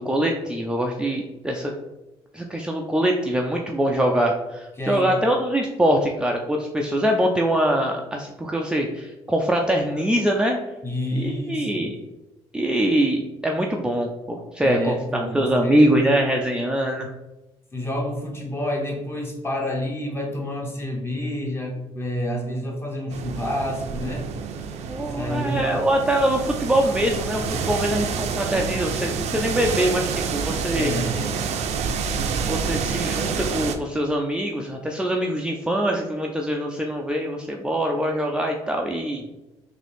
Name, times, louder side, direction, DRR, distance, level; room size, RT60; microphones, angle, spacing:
voice 1, 0.0-1.7 2.3-10.6 11.2-11.9 12.5-17.1 24.9-30.9 32.5-39.2, right 1 dB, 10° right, 1 dB, 0.4 m, -23 dB
voice 2, 4.8-5.2 10.8-11.9 14.6-16.2 17.7-24.3 24.9-25.7 30.7-31.4, left 1 dB, 20° left, 0 dB, 1.2 m, -29 dB
sound 1, 23.1-33.8, right 6 dB, 70° right, 0.5 m, -28 dB
3.8 x 2.6 x 3.4 m, 1.0 s
supercardioid pair, 75°, 12 cm